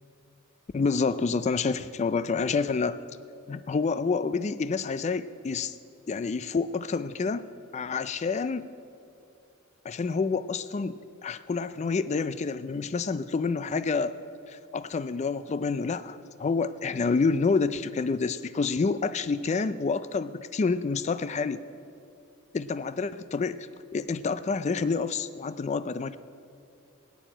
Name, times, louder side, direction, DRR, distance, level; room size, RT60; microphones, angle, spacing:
voice 1, 0.7-3.0 3.5-5.7 6.1-7.4 7.7-8.7 9.8-14.2 14.5-21.6 22.5-23.7 23.9-26.2, left 4 dB, 30° left, 14 dB, 0.3 m, -28 dB
17.0 x 9.3 x 8.9 m, 2.5 s
head